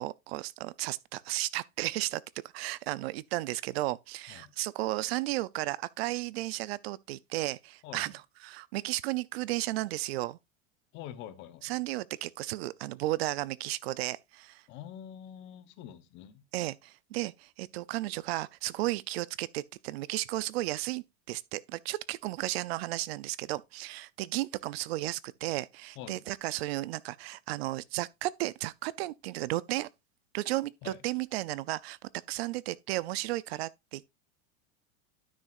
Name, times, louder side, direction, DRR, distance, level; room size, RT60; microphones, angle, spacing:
voice 1, 0.0-2.2 2.5-8.1 8.4-10.4 11.6-14.6 16.5-29.9 30.3-34.1, right 18 dB, 70° right, 0.5 m, -34 dB
voice 2, 10.9-11.7 14.7-16.4 26.0-26.2 30.8-31.0, left 10 dB, 35° left, 1.0 m, -45 dB
12.0 x 6.4 x 2.5 m
supercardioid pair, 165°, 32 cm